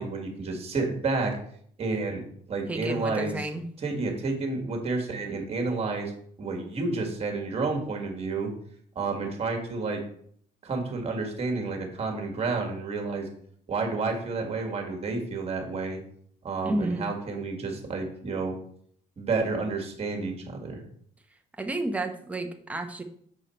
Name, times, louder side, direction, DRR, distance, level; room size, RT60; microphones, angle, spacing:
voice 1, 0.0-1.4 1.8-3.5 3.8-6.1 6.4-8.5 9.0-10.0 10.6-13.3 13.7-16.0 16.4-18.6 19.2-20.8, right 3 dB, 35° right, 3 dB, 1.8 m, -30 dB
voice 2, 2.7-3.6 16.6-17.0 21.6-23.0, right 2 dB, 10° right, 4 dB, 0.8 m, -31 dB
6.8 x 4.8 x 4.3 m, 0.63 s
cardioid pair, 110°, 17 cm